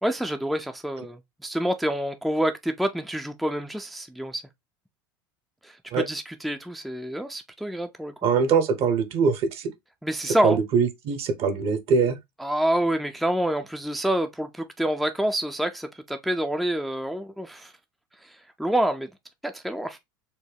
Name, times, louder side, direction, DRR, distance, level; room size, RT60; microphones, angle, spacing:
voice 1, 0.0-4.4 5.6-8.1 10.0-10.6 12.4-17.7 18.6-19.1 19.4-20.0, right 1 dB, ahead, 0.4 m, -27 dB
voice 2, 8.2-9.7 10.2-12.2, right 5 dB, 55° right, 0.9 m, -23 dB
4.3 x 2.2 x 3.4 m
hypercardioid pair, 85°, 12 cm